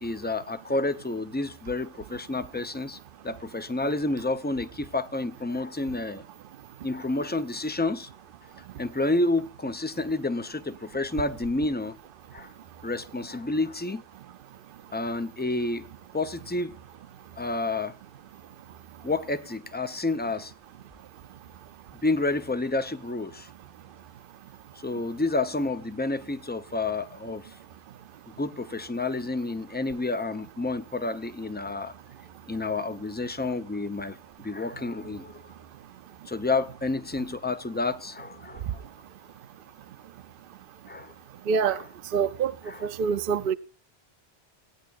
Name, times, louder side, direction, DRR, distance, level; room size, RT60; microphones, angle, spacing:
voice 1, 0.0-3.0 3.2-6.2 6.8-8.1 8.8-12.0 12.3-12.5 12.8-14.0 14.9-15.8 16.1-16.7 17.4-17.9 19.0-20.5 22.0-23.5 24.8-27.5 28.4-31.9 32.5-34.2 34.4-35.4 36.3-38.9 40.9-41.1 41.7-41.8 42.7-42.9, left 2 dB, 15° left, 0.4 m, -29 dB
voice 2, 41.5-41.8 42.1-42.5 42.8-43.5, right 6 dB, 55° right, 0.7 m, -25 dB
17.5 x 9.4 x 2.4 m
omnidirectional pair, 1.2 m